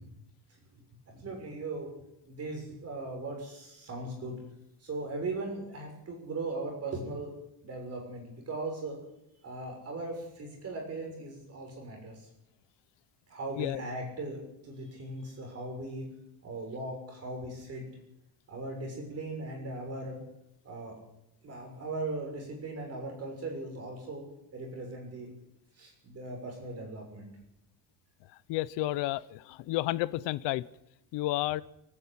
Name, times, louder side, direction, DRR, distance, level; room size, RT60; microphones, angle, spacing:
voice 1, 1.1-1.9 2.3-4.4 4.8-7.3 7.6-9.0 9.4-12.3 13.3-16.0 16.4-17.8 18.5-20.2 20.6-20.9 21.4-24.2 24.5-25.3 25.8-27.3, right 2 dB, 35° right, 1 dB, 6.6 m, -38 dB
voice 2, 28.5-30.6 31.1-31.6, left 16 dB, 70° left, 17 dB, 0.9 m, -31 dB
29.0 x 10.5 x 8.9 m, 0.84 s
cardioid pair, 145°, 44 cm